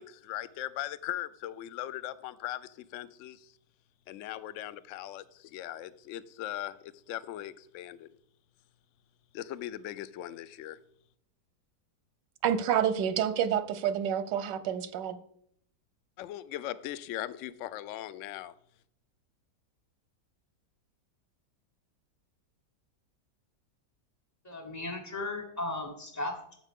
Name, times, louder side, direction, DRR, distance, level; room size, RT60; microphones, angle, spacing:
voice 1, 0.0-3.5 4.1-8.1 9.3-10.8 16.2-18.5, left 13 dB, 80° left, 0.7 m, -39 dB
voice 2, 12.4-15.2, right 9 dB, 90° right, 1.4 m, -28 dB
voice 3, 24.4-26.5, left 2 dB, 15° left, 0.7 m, -36 dB
11.5 x 7.4 x 3.6 m
omnidirectional pair, 1.8 m